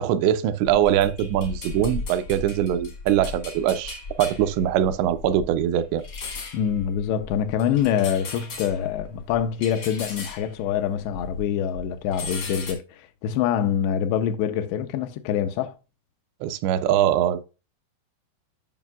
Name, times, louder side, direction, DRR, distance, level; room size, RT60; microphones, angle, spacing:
voice 1, 0.0-6.0 16.4-17.4, right 11 dB, 85° right, 2.8 m, -22 dB
sound 1, 0.6-11.5 11.7-12.7, left 4 dB, 60° left, 1.2 m, -37 dB
voice 2, 6.5-15.7, left 9 dB, 85° left, 2.8 m, -25 dB
9.1 x 6.0 x 2.3 m
omnidirectional pair, 5.0 m